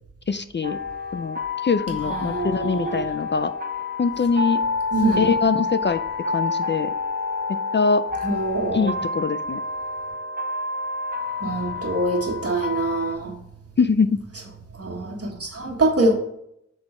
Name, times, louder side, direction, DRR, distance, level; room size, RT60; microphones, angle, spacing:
voice 1, 0.3-0.8 1.1-3.5 4.0-4.6 5.2-6.0 6.3-6.9 7.5-8.0 8.7-9.6 13.8-14.2, left 5 dB, 40° left, 11 dB, 0.4 m, -23 dB
sound 1, 0.6-13.2, left 3 dB, 30° right, 0.8 m, -28 dB
voice 2, 2.0-3.1 4.9-5.3 8.2-9.0 11.4-13.4 14.7-16.2, right 2 dB, 50° right, 2 dB, 1.4 m, -24 dB
6.2 x 4.9 x 4.2 m, 0.77 s
wide cardioid pair, 65°, 30 cm